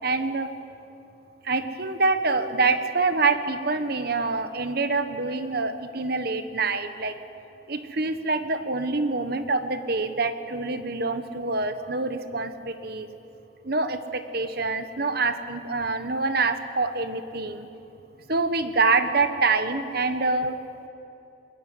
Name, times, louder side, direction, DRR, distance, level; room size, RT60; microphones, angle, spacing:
voice 1, 0.0-0.5 1.4-7.1 7.7-13.1 13.6-17.7 18.3-20.6, right 3 dB, 50° right, 9 dB, 1.4 m, -26 dB
22.5 x 20.5 x 9.3 m, 2.8 s
head